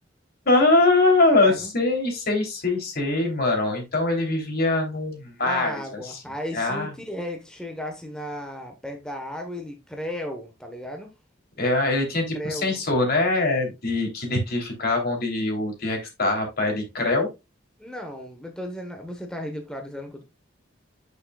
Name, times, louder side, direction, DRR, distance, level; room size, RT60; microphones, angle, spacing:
voice 1, 0.4-6.2 6.5-6.9 11.6-17.3, left 2 dB, 55° left, 3.1 m, -23 dB
voice 2, 1.4-1.7 5.4-11.1 12.3-12.8 17.8-20.2, equal, 5° left, 1.1 m, -35 dB
8.6 x 6.4 x 2.3 m
head